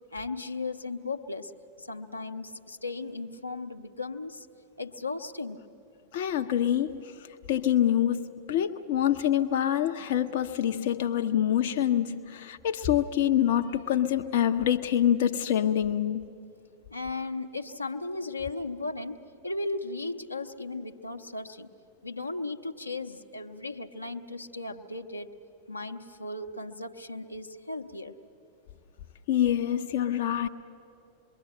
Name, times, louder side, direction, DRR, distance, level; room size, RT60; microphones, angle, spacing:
voice 1, 0.1-1.5 1.8-4.5 4.8-5.6 16.9-21.7 22.0-25.3 25.7-28.2, left 3 dB, 85° left, 0.9 m, -36 dB
voice 2, 6.1-16.2 29.3-30.5, left 10 dB, 55° left, 0.6 m, -26 dB
26.0 x 22.0 x 7.9 m
figure-of-eight pair, 90°, 0 cm